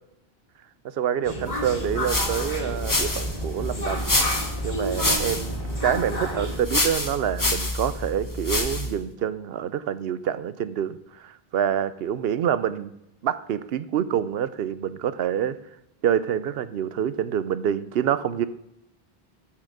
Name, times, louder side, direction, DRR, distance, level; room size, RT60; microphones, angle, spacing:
voice 1, 1.0-4.1 4.6-5.6 5.8-12.9 13.2-15.6 16.0-18.5, right 9 dB, 75° right, 14 dB, 0.8 m, -26 dB
sound 1, 1.2-6.6, equal, 40° left, 1.8 m, -32 dB
sound 2, 1.6-9.0, left 2 dB, 20° left, 1.0 m, -27 dB
7.6 x 7.1 x 6.5 m, 0.81 s
omnidirectional pair, 1.0 m